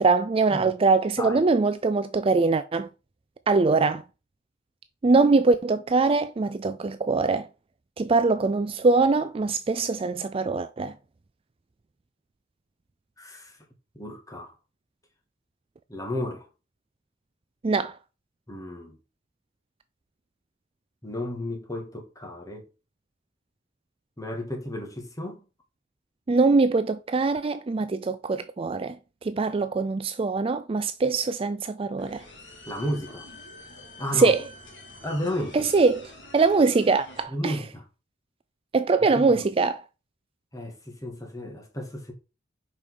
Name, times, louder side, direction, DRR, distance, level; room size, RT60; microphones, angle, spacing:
voice 1, 0.0-2.9 3.5-4.0 5.0-7.5 8.0-10.9 17.6-17.9 26.3-29.0 29.2-32.2 34.1-34.4 35.5-36.0 36.3-37.6 38.7-39.8, right 3 dB, 30° right, 0.4 m, -22 dB
voice 2, 13.2-13.6 13.9-14.5 15.9-16.5 18.5-19.0 21.0-22.7 24.2-25.5 32.7-33.3 34.0-34.3 35.0-35.7 37.3-37.8 39.1-39.5 40.5-42.1, left 1 dB, 15° left, 2.0 m, -33 dB
sound 1, 32.0-37.2, left 1 dB, 65° left, 2.3 m, -47 dB
5.3 x 5.2 x 6.3 m
head